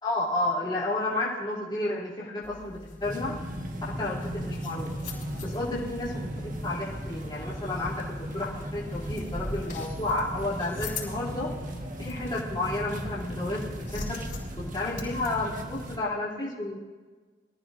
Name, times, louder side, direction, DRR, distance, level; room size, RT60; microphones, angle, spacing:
voice 1, 0.0-3.4 3.9-4.9 5.4-11.5 12.0-14.2 14.6-16.8, left 2 dB, 25° left, -7 dB, 2.9 m, -31 dB
sound 1, 2.4-15.3, left 2 dB, 50° left, 5.4 m, -42 dB
sound 2, 3.0-16.0, equal, 45° right, 1.4 m, -37 dB
24.0 x 14.5 x 2.6 m, 1.4 s
head